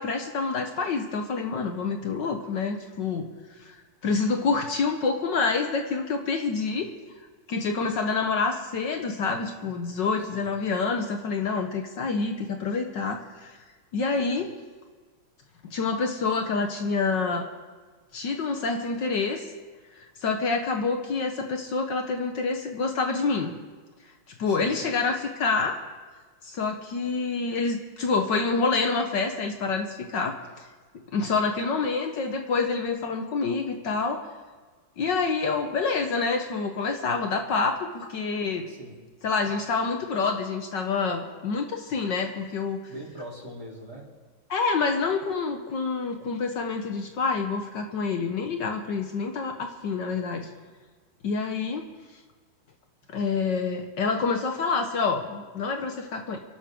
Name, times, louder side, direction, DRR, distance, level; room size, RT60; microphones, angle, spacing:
voice 1, 0.0-3.3 3.6-3.7 4.0-6.9 7.5-13.5 13.9-14.5 15.6-17.5 18.1-19.4 20.2-23.6 24.4-25.8 26.4-30.4 31.1-34.3 35.0-38.7 39.2-42.8 44.5-50.5 51.2-51.8 53.1-56.4, left 4 dB, 60° left, 5 dB, 1.6 m, -27 dB
voice 2, 10.2-10.5 24.4-24.8 38.7-39.0 42.9-44.1, right 1 dB, 45° right, -4 dB, 4.1 m, -42 dB
29.5 x 12.0 x 3.7 m, 1.4 s
omnidirectional pair, 2.3 m